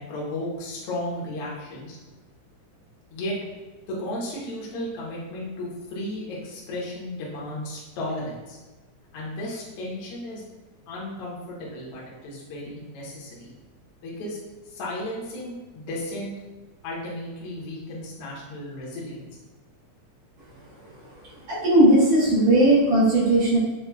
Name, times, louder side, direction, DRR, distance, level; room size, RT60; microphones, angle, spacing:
voice 1, 0.0-2.0 3.1-3.4 3.9-8.6 9.1-10.4 10.9-13.5 14.0-14.4 14.7-16.3 16.8-19.3, left 1 dB, 70° left, -5 dB, 1.4 m, -34 dB
voice 2, 21.5-23.6, right 1 dB, 70° right, -8 dB, 1.5 m, -17 dB
5.5 x 2.1 x 2.2 m, 1.2 s
omnidirectional pair, 3.6 m